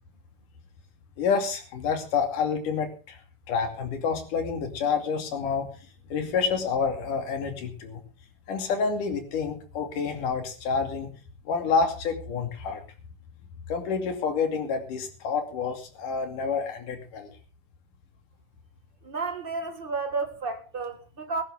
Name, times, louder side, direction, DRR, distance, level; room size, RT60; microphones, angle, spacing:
voice 1, 1.2-3.2 3.5-5.7 6.1-8.0 8.5-11.1 11.5-12.8 13.7-17.3, left 5 dB, 75° left, 4.1 m, -28 dB
voice 2, 19.0-21.4, right 4 dB, 50° right, 0.6 m, -32 dB
22.0 x 11.0 x 3.6 m
omnidirectional pair, 3.8 m